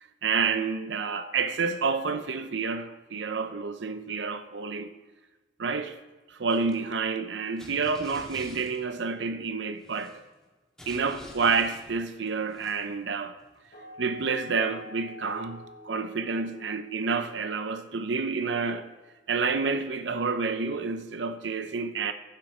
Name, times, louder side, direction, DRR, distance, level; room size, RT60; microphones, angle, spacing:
voice 1, 0.2-4.9 5.6-5.9 6.3-10.1 10.9-13.4 14.0-18.9 19.3-22.1, right 5 dB, 75° right, 0.6 m, -29 dB
sound 1, 6.5-6.8 7.6-9.2 9.7-10.4 10.8-13.1 13.4-13.7, left 1 dB, 5° left, 1.8 m, -48 dB
sound 2, 13.7-19.1, left 2 dB, 60° left, 3.5 m, -48 dB
11.5 x 6.0 x 4.9 m
head